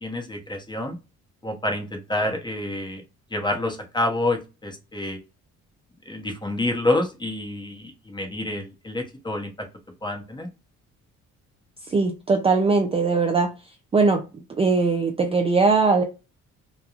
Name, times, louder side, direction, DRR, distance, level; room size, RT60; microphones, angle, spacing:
voice 1, 0.0-1.0 1.4-3.0 3.3-5.2 6.1-9.7 10.0-10.5, left 1 dB, 15° left, 0.8 m, -28 dB
voice 2, 11.9-13.5 13.9-14.2 14.6-16.0, right 4 dB, 20° right, 0.4 m, -20 dB
2.9 x 2.2 x 2.4 m
cardioid pair, 90°, 30 cm